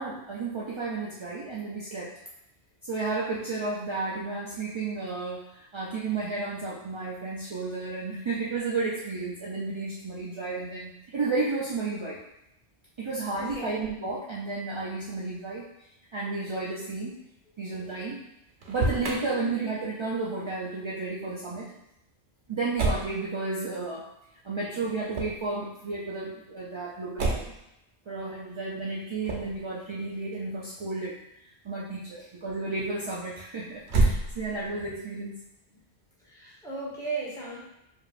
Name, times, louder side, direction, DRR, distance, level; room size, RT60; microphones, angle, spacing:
voice 1, 0.0-2.1 2.8-12.2 13.0-15.7 16.1-17.1 17.6-18.2 18.7-21.7 22.5-24.1 24.4-27.5 28.1-31.2 31.6-35.4, right 3 dB, 50° right, -5 dB, 0.3 m, -32 dB
voice 2, 13.4-13.9 32.2-32.3 35.7-35.8 36.2-37.6, right 3 dB, 5° left, -7 dB, 1.1 m, -37 dB
Motor vehicle (road), 18.5-19.2 22.8-23.1 25.1-25.5 27.2-27.6 29.2-29.6 33.8-34.7, right 2 dB, 80° right, 1.0 m, -27 dB
4.9 x 2.8 x 2.5 m, 0.85 s
omnidirectional pair, 1.1 m